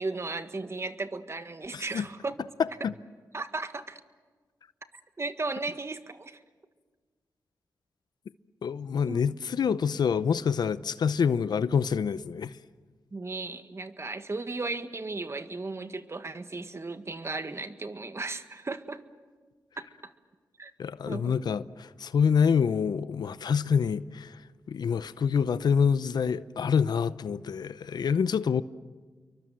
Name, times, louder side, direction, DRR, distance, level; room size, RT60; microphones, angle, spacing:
voice 1, 0.0-2.3 3.3-4.0 5.2-6.4 9.1-9.2 13.1-19.0 19.8-20.1 20.6-20.7 21.0-21.3, right 3 dB, 40° right, 1.7 m, -35 dB
voice 2, 1.7-2.1 2.6-2.9 8.6-12.6 20.8-28.6, left 6 dB, 75° left, 0.7 m, -26 dB
29.5 x 23.5 x 7.7 m
cardioid pair, 55°, 7 cm